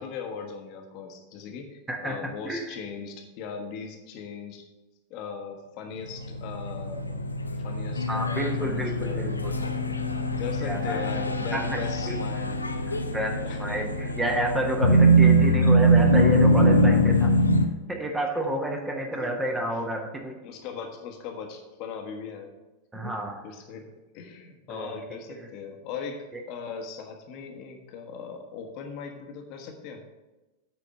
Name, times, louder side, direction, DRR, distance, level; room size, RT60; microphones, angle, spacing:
voice 1, 0.0-4.7 5.1-7.1 7.6-10.0 10.4-12.6 13.4-13.8 19.2-19.3 20.4-22.5 22.9-23.1 23.4-23.9 24.1-30.0, left 6 dB, 45° left, 3 dB, 1.2 m, -39 dB
voice 2, 1.9-2.8 8.1-9.5 10.6-11.0 11.5-12.1 12.9-17.3 17.9-20.4 22.9-23.4 24.7-24.9 25.4-25.5, right 1 dB, 10° right, 2 dB, 1.2 m, -30 dB
sound 1, 6.1-17.7, right 1 dB, 80° left, 0.6 m, -22 dB
8.8 x 4.1 x 6.8 m, 1.1 s
figure-of-eight pair, 90°, 0 cm